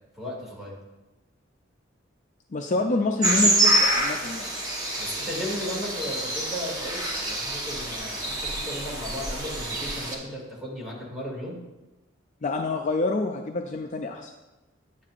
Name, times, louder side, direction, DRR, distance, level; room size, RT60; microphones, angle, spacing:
voice 1, 0.1-0.8 5.0-11.6, equal, ahead, -5 dB, 2.3 m, -35 dB
voice 2, 2.5-4.5 12.4-14.3, left 2 dB, 40° left, 3 dB, 0.4 m, -27 dB
sound 1, 3.2-10.1, right 1 dB, 20° right, 1.2 m, -26 dB
9.6 x 7.5 x 2.5 m, 1.1 s
head